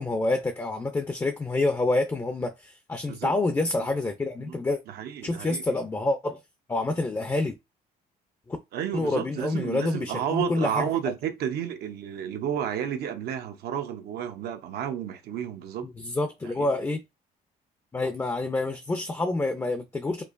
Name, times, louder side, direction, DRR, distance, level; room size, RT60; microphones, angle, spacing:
voice 1, 0.0-4.8 5.2-6.4 6.7-7.5 8.5-8.6 8.9-10.9 15.8-17.0 17.9-20.2, left 2 dB, 15° left, 0.5 m, -27 dB
voice 2, 4.9-5.6 8.7-15.9 16.4-16.7, right 9 dB, 70° right, 0.7 m, -31 dB
4.6 x 2.4 x 2.5 m
cardioid pair, 110°, 17 cm